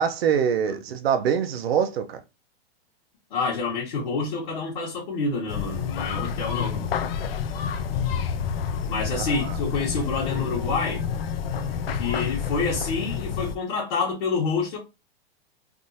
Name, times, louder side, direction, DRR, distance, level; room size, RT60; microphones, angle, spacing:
voice 1, 0.0-2.2 9.1-9.6 10.3-10.8, right 8 dB, 75° right, 0.7 m, -25 dB
voice 2, 3.3-6.8 8.9-11.0 11.9-14.8, left 4 dB, 50° left, 1.3 m, -27 dB
sound 1, 5.5-13.5, left 7 dB, 65° left, 0.6 m, -29 dB
3.5 x 2.6 x 2.7 m
supercardioid pair, 175°, 31 cm